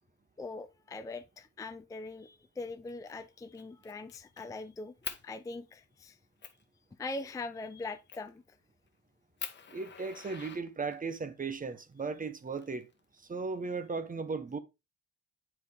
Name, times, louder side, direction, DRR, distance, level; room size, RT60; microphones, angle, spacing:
voice 1, 0.4-4.9 5.2-6.2 7.0-8.6, left 3 dB, 10° left, 0.4 m, -42 dB
Fire, 2.9-3.2 3.5-4.5 5.0-5.2 5.8-5.9 6.4-6.6 8.1-8.4 8.9-9.0 9.4-11.2 12.2-13.2, left 6 dB, 35° left, 1.0 m, -44 dB
voice 2, 9.7-12.9 13.3-14.6, right 4 dB, 25° right, 0.9 m, -36 dB
7.5 x 4.8 x 3.4 m
cardioid pair, 90°, 30 cm